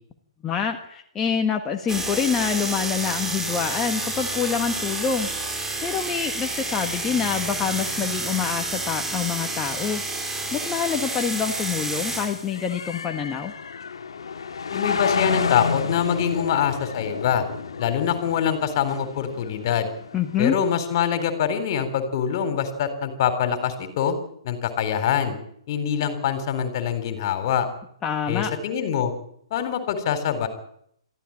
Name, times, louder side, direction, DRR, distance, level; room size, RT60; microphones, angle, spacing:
voice 1, 0.4-5.3 5.8-10.0 10.5-13.5 20.1-20.5 28.0-28.5, left 7 dB, 20° left, 3 dB, 1.6 m, -26 dB
sound 1, 1.9-12.4, right 2 dB, 10° right, 4.9 m, -29 dB
sound 2, 10.4-21.1, left 5 dB, 70° left, 1.7 m, -31 dB
voice 2, 14.7-17.4 17.8-19.9 20.4-24.1 24.4-25.4 25.7-27.7 28.3-29.1 29.5-30.5, left 8 dB, 45° left, 10 dB, 4.0 m, -24 dB
22.0 x 15.0 x 8.9 m, 0.70 s
figure-of-eight pair, 125°, 3 cm